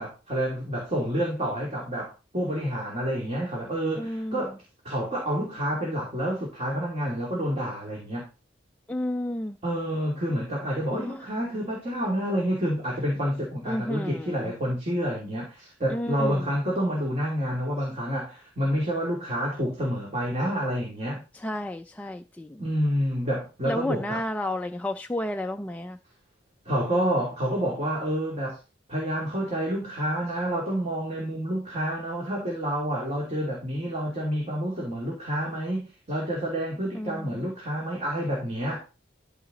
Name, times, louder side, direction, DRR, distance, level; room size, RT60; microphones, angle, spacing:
voice 1, 0.0-4.6 4.8-8.3 9.6-21.2 22.6-24.2 26.6-28.6 28.9-38.8, equal, 35° right, 3.0 m, -28 dB
voice 2, 4.0-4.6 8.9-9.6 10.9-11.2 13.7-14.5 15.9-16.5 21.3-22.6 23.7-26.0 36.9-37.5, left 1 dB, 10° left, 0.4 m, -32 dB
13.5 x 4.7 x 4.0 m
head